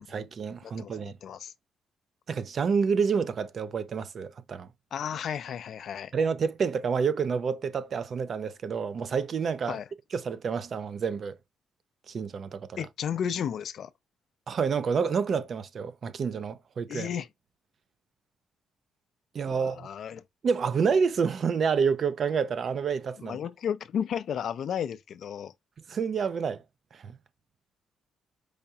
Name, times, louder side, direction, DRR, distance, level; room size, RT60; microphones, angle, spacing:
voice 1, 0.0-1.1 2.3-4.7 6.1-9.8 10.1-11.4 12.1-12.8 14.5-17.1 19.3-19.9 20.4-23.4 25.9-26.6 26.9-27.2, right 6 dB, 50° right, 0.4 m, -28 dB
voice 2, 0.6-1.5 4.9-6.1 9.7-9.9 12.8-13.9 16.9-17.3 19.5-20.2 23.2-25.5, left 8 dB, 65° left, 0.4 m, -33 dB
4.8 x 2.2 x 2.7 m
cardioid pair, 90°, 0 cm